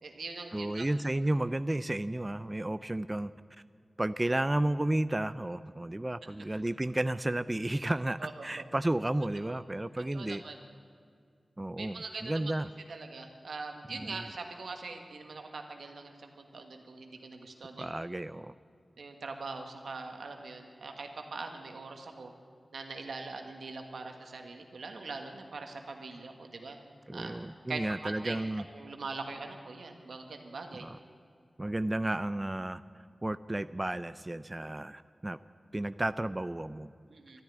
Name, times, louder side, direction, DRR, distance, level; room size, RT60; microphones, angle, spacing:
voice 1, 0.0-0.9 8.2-8.6 9.5-9.6 10.1-10.6 11.8-12.5 12.9-17.9 19.0-22.3 22.7-26.8 27.1-27.3 27.7-28.4 28.7-30.9 37.1-37.4, right 3 dB, 90° right, 4 dB, 1.6 m, -42 dB
voice 2, 0.5-3.3 4.0-10.4 11.6-12.7 13.9-14.2 17.8-18.5 27.1-28.6 30.8-31.0 31.6-32.8 33.2-35.4 35.7-36.9, right 1 dB, 25° right, 14 dB, 0.4 m, -32 dB
13.0 x 10.5 x 10.0 m, 2.3 s
wide cardioid pair, 55°, 0 cm